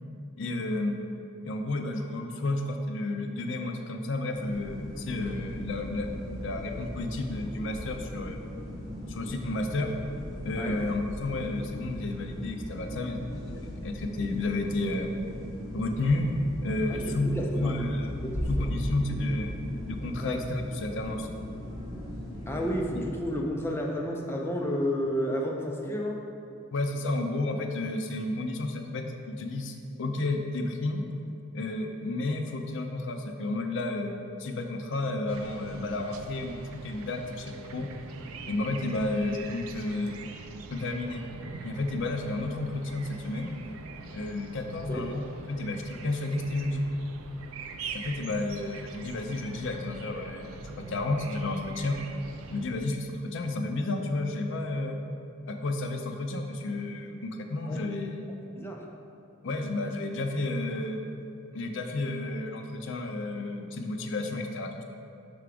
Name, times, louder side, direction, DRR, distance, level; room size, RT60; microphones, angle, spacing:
voice 1, 0.4-1.0 1.4-8.4 9.1-9.9 10.4-15.1 15.7-16.3 16.6-18.2 18.5-19.5 19.8-21.3 23.0-23.1 26.7-31.0 31.5-34.1 34.4-37.9 38.5-40.2 40.7-41.2 41.6-43.6 44.1-46.9 47.9-52.0 52.5-55.0 55.5-58.3 59.4-61.0 61.5-64.8, left 2 dB, 60° left, 3 dB, 0.4 m, -31 dB
sound 1, 4.3-23.0, left 1 dB, 15° right, 1.4 m, -38 dB
voice 2, 16.9-17.8 18.2-18.7 20.2-20.4 22.5-26.2 44.9-45.0 57.7-57.8 58.6-58.8, equal, 10° left, -1 dB, 0.5 m, -31 dB
sound 2, 35.3-52.7, right 4 dB, 85° right, 0.4 m, -43 dB
5.8 x 3.5 x 4.9 m, 2.6 s
head